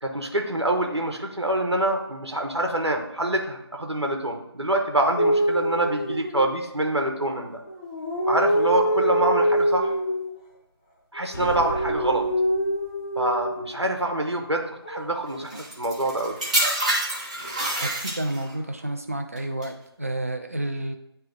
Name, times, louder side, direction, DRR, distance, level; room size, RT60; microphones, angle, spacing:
voice 1, 0.0-7.6 8.3-9.9 11.1-12.3 13.2-15.5 15.8-16.4, right 1 dB, 80° right, 3 dB, 1.2 m, -25 dB
sound 1, 5.2-6.9 7.7-10.3 11.2-13.8 14.8-15.4, equal, 10° left, 0.6 m, -25 dB
sound 2, 11.3-13.0, left 2 dB, 45° left, 0.7 m, -37 dB
sound 3, 15.5-18.6 19.4-19.7, right 2 dB, 15° right, 1.0 m, -27 dB
voice 2, 17.8-21.0, right 1 dB, 35° right, 6 dB, 0.5 m, -30 dB
9.4 x 3.3 x 3.6 m, 0.81 s
figure-of-eight pair, 165°, 14 cm